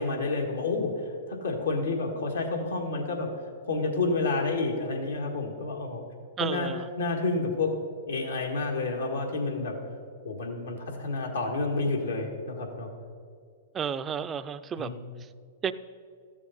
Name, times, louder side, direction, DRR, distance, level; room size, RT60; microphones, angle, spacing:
voice 1, 0.0-3.3 3.7-6.0 6.4-6.7 7.0-7.7 8.1-9.8 10.2-12.9 14.8-15.0, left 3 dB, 85° left, 1 dB, 1.7 m, -29 dB
voice 2, 6.4-6.9 13.7-14.9 15.6-15.7, right 7 dB, 20° right, 12 dB, 0.4 m, -32 dB
14.0 x 7.1 x 4.2 m, 2.1 s
hypercardioid pair, 115°, 0 cm